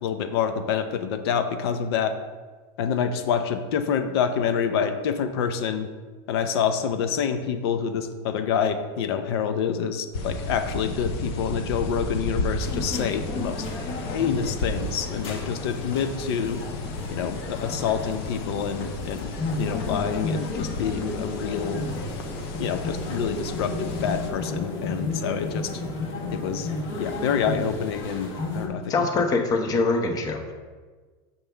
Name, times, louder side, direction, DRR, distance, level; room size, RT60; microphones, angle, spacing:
voice 1, 0.0-2.2 2.8-5.9 6.3-16.6 17.1-19.3 19.6-21.8 22.6-25.7 26.3-26.7 27.0-29.2, left 7 dB, 90° left, 8 dB, 0.5 m, -27 dB
sound 1, 10.1-24.3, left 2 dB, 70° left, 0.9 m, -33 dB
sound 2, 12.6-28.7, left 2 dB, 50° left, 1.4 m, -33 dB
voice 2, 28.9-30.5, left 3 dB, 30° left, 4 dB, 0.8 m, -23 dB
7.0 x 5.4 x 3.4 m, 1.4 s
supercardioid pair, 150°, 13 cm